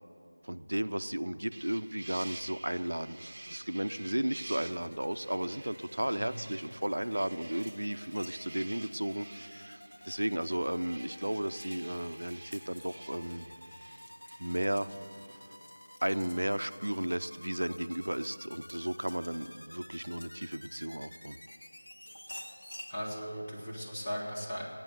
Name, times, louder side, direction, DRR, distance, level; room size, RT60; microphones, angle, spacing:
voice 1, 0.4-13.5 14.4-14.9 16.0-21.4, right 1 dB, 80° right, 12 dB, 0.5 m, -34 dB
sound 1, 1.5-15.6, right 2 dB, 45° right, 0.7 m, -51 dB
sound 2, 4.4-22.9, left 1 dB, 85° left, 0.7 m, -53 dB
sound 3, 7.5-10.3 10.8-20.9 21.5-23.0, equal, 65° left, 2.1 m, -53 dB
voice 2, 22.9-24.7, equal, 25° left, -6 dB, 1.8 m, -38 dB
10.5 x 9.0 x 8.0 m, 2.8 s
figure-of-eight pair, 170°, 0 cm